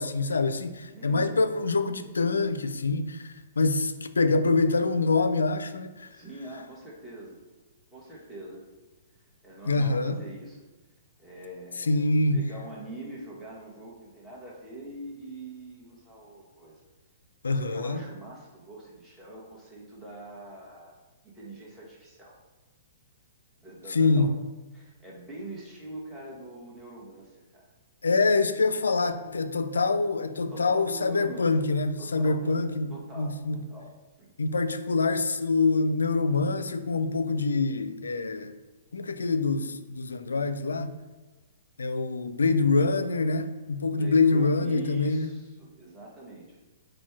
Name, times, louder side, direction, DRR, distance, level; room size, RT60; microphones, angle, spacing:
voice 1, 0.0-6.1 9.7-10.2 11.8-12.5 17.4-18.0 23.9-24.3 28.0-33.6 34.4-38.5 38.9-41.0 41.8-45.3, left 3 dB, 85° left, 0.3 m, -25 dB
voice 2, 0.9-1.4 6.1-7.4 7.9-8.6 9.4-10.6 11.2-16.8 17.4-21.0 21.2-22.4 23.6-24.3 24.7-27.7 30.5-31.5 32.0-33.9 34.2-34.3 43.9-46.6, right 1 dB, 5° right, 1.2 m, -43 dB
4.3 x 2.2 x 4.5 m
hypercardioid pair, 130°, 0 cm